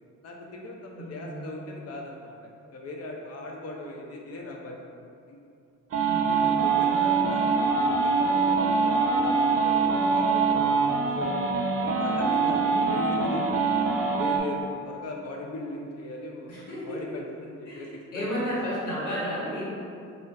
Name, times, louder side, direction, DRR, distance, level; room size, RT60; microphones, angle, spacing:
voice 1, 0.2-4.8 5.3-5.4 6.1-11.4 11.8-13.9 14.1-17.9 18.1-18.4, left 2 dB, 50° left, -1 dB, 0.6 m, -38 dB
voice 2, 0.9-1.5 5.9-7.3 12.4-13.0 16.5-17.0 17.6-19.7, equal, 85° left, -9 dB, 1.3 m, -34 dB
sound 1, 5.9-14.4, right 5 dB, 45° right, 0.5 m, -24 dB
5.0 x 2.2 x 2.4 m, 2.4 s
cardioid pair, 85°, 31 cm